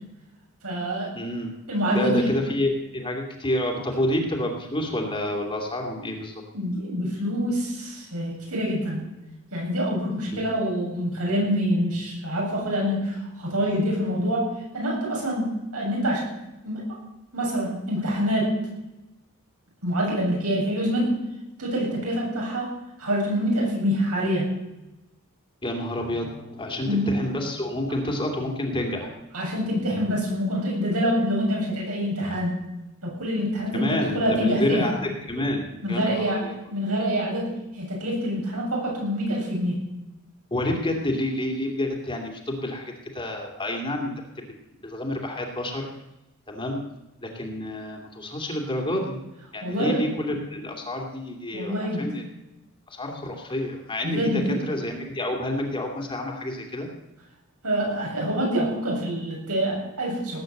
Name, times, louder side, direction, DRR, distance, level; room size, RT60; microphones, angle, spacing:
voice 1, 0.6-1.1 1.7-2.3 6.5-9.0 9.5-14.4 14.7-16.2 16.6-16.9 17.3-18.5 19.8-21.1 21.6-22.7 23.0-24.5 26.8-27.1 29.3-32.5 33.0-34.9 35.8-37.5 37.7-39.7 49.6-50.0 51.5-52.1 54.0-54.6 57.6-60.4, equal, 80° right, -2 dB, 7.8 m, -26 dB
voice 2, 1.1-1.5 1.9-6.4 10.3-10.4 25.6-29.1 33.7-36.5 40.5-44.1 44.4-44.5 44.8-45.9 46.5-46.8 47.2-49.2 49.5-52.2 52.9-56.9, left 1 dB, 25° left, 1 dB, 2.6 m, -29 dB
18.5 x 9.2 x 7.9 m, 0.98 s
head